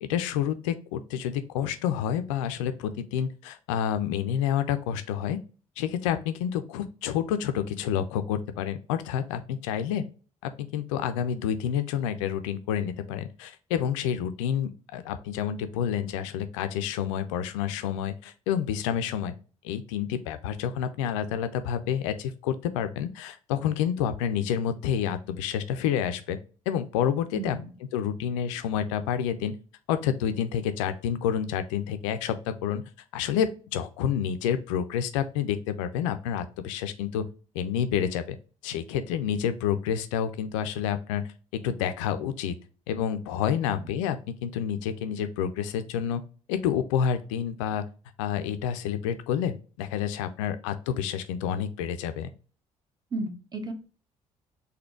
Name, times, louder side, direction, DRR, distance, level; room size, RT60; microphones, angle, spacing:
voice 1, 0.0-5.4 5.8-10.1 10.4-19.3 19.6-26.4 26.7-27.6 27.9-29.6 29.9-32.8 33.1-37.3 37.5-38.2 38.6-42.6 42.9-46.2 46.5-47.9 48.2-52.3, left 9 dB, 65° left, 10 dB, 0.4 m, -29 dB
voice 2, 27.3-27.7 43.6-43.9 53.1-53.7, right 2 dB, 25° right, 6 dB, 1.1 m, -34 dB
4.0 x 2.8 x 4.4 m, 0.37 s
figure-of-eight pair, 45°, 17 cm